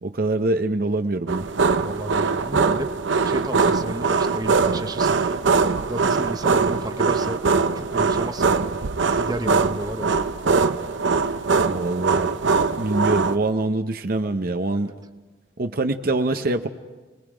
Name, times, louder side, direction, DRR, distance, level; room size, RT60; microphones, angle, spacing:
voice 1, 0.0-1.5 11.7-12.3 12.8-14.9 15.6-16.7, right 2 dB, 50° right, 7 dB, 0.7 m, -24 dB
sound 1, 1.3-13.4, right 4 dB, 85° right, 0.8 m, -22 dB
voice 2, 1.8-2.9 3.2-5.2 5.9-7.4 7.7-8.7 9.2-10.1, right 1 dB, 20° right, 7 dB, 0.9 m, -32 dB
30.0 x 20.5 x 5.0 m, 1.3 s
head